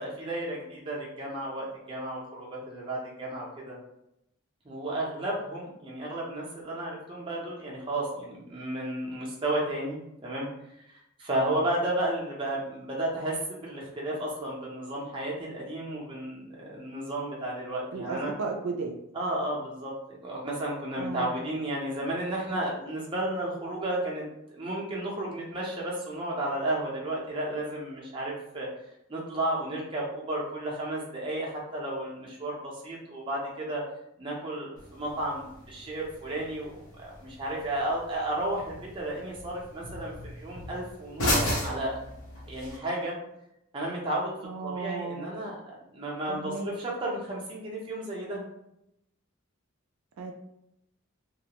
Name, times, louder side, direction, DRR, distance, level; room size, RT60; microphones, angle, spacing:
voice 1, 0.0-3.8 4.6-10.5 11.2-18.3 19.1-24.3 24.5-28.7 29.1-33.8 34.2-41.3 41.6-42.0 42.4-43.2 43.7-44.3 44.6-48.4, right 1 dB, 25° right, -4 dB, 0.6 m, -33 dB
voice 2, 17.9-19.0 21.0-21.4 44.4-45.3 46.3-46.8 50.2-50.3, right 4 dB, 85° right, 3 dB, 0.4 m, -34 dB
sound 1, 34.8-42.8, left 1 dB, 85° left, 0.8 m, -35 dB
2.3 x 2.1 x 2.8 m, 0.82 s
head